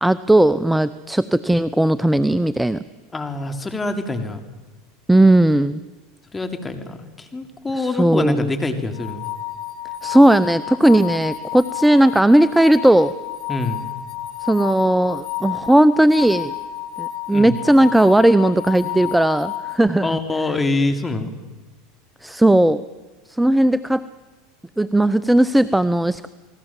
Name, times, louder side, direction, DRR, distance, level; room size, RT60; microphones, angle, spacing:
voice 1, 0.0-2.8 5.1-5.8 7.7-8.5 10.0-13.1 14.4-16.5 17.0-20.1 20.5-20.6 22.2-22.8 23.3-24.1 24.8-26.3, right 1 dB, 5° right, 16 dB, 0.7 m, -16 dB
voice 2, 3.1-4.4 6.3-9.3 13.5-13.8 17.3-17.6 20.0-21.3, left 2 dB, 15° left, 7 dB, 3.3 m, -25 dB
sound 1, 8.9-19.8, left 13 dB, 55° left, 2.7 m, -31 dB
29.5 x 20.0 x 7.4 m, 1.3 s
hypercardioid pair, 100°, 0 cm